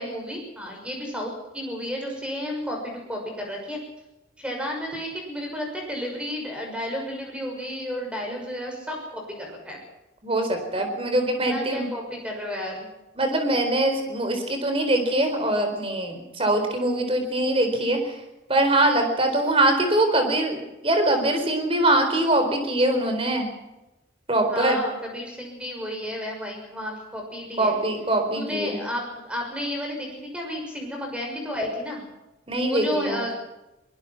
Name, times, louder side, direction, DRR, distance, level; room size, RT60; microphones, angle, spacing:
voice 1, 0.0-3.8 4.4-9.8 11.4-12.9 24.5-27.7 28.3-32.0 32.7-33.4, left 1 dB, 5° right, 1 dB, 6.3 m, -32 dB
voice 2, 10.2-11.9 13.2-18.1 18.5-23.5 24.3-24.8 27.6-28.8 32.5-33.2, right 1 dB, 30° right, 5 dB, 4.1 m, -23 dB
22.5 x 20.0 x 6.0 m, 0.97 s
head